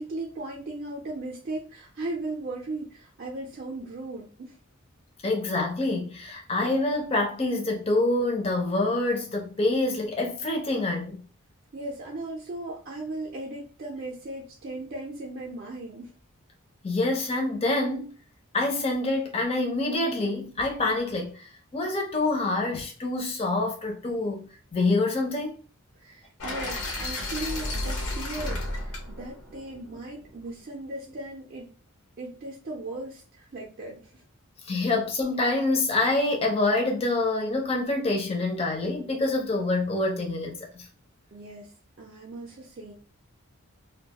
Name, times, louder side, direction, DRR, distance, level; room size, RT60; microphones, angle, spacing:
voice 1, 0.0-4.6 11.7-16.1 26.0-31.7 32.2-34.1 41.3-41.7 42.0-42.9, right 2 dB, 45° right, 0.4 m, -37 dB
voice 2, 5.2-11.2 16.8-18.1 18.5-25.6 34.6-40.9, left 2 dB, 25° left, 0.4 m, -26 dB
sound 1, 26.4-30.4, left 2 dB, 90° left, 0.7 m, -33 dB
2.3 x 2.2 x 2.8 m
head